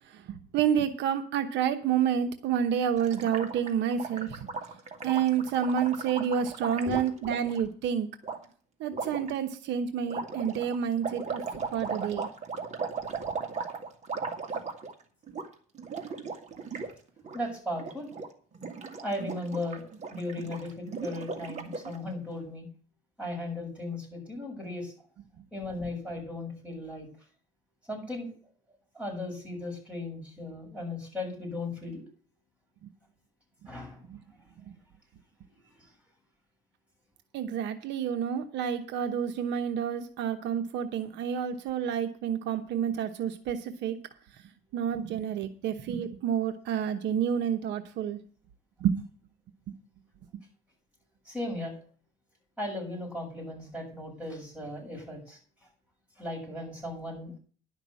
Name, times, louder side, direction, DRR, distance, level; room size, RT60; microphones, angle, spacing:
voice 1, 0.1-4.5 5.0-8.1 8.8-12.3 32.8-32.9 34.1-34.2 34.6-34.7 37.3-44.0 44.7-48.2 48.8-49.0, right 8 dB, 70° right, 7 dB, 1.0 m, -29 dB
Gurgling, 3.0-7.6 8.2-8.4 8.9-9.3 10.1-15.0 15.3-15.5 15.7-16.9 17.2-17.4 17.7-18.3 18.5-22.0, right 4 dB, 35° right, 2.1 m, -37 dB
voice 2, 6.9-7.4 13.2-13.7 16.8-16.9 17.3-18.1 19.0-19.8 20.1-22.7 23.2-24.9 25.5-27.1 27.9-28.3 28.9-32.0 33.7-34.0 35.6-35.9 51.3-51.8 52.6-55.4 56.2-57.3, left 1 dB, 5° right, -2 dB, 7.2 m, -37 dB
11.0 x 5.9 x 8.2 m, 0.43 s
cardioid pair, 110°, 19 cm